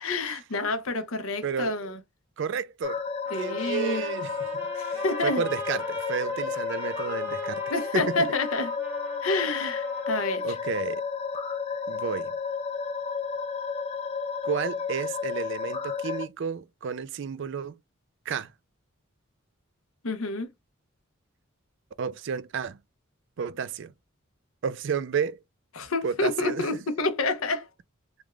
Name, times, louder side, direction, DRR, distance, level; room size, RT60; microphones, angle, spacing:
voice 1, 0.0-2.0 3.3-4.0 4.7-5.4 7.7-8.7 9.2-10.6 20.0-20.5 25.8-27.7, left 2 dB, 75° left, 0.8 m, -28 dB
voice 2, 1.4-1.8 2.4-3.0 3.3-4.3 4.9-7.6 7.9-8.3 10.4-11.0 11.9-12.3 14.4-17.8 18.3-18.5 22.0-22.8 23.4-23.9 24.6-25.4 26.0-26.7, right 6 dB, 60° right, 0.4 m, -31 dB
sound 1, 2.8-16.3, left 5 dB, 30° left, 0.4 m, -32 dB
Trumpet, 3.2-10.4, right 1 dB, 10° right, 0.9 m, -42 dB
3.4 x 2.4 x 3.2 m
head